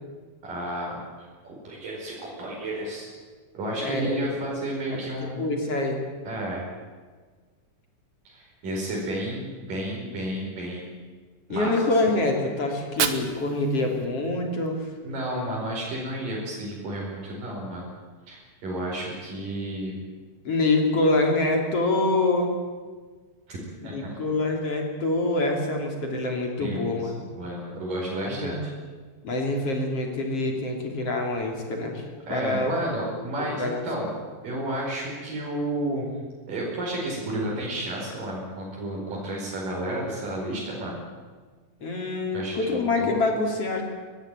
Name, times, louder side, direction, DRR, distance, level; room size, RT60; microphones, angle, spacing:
voice 1, 0.4-3.1 3.5-5.4 6.2-6.7 8.2-10.9 11.5-11.7 15.0-17.9 18.3-20.0 23.5-23.6 23.8-24.2 26.6-28.6 32.3-34.1 34.4-36.1 36.5-41.0 42.3-43.1, right 1 dB, 80° right, -3 dB, 6.5 m, -32 dB
voice 2, 3.8-4.3 4.9-6.0 11.5-14.9 20.4-22.5 23.9-27.2 28.3-28.6 29.2-32.0 32.3-32.7 33.5-34.1 41.8-43.8, left 2 dB, 45° left, 2 dB, 4.0 m, -26 dB
Fire, 12.7-14.7, right 8 dB, 55° right, 2.1 m, -32 dB
23.0 x 19.0 x 9.0 m, 1.5 s
omnidirectional pair, 3.8 m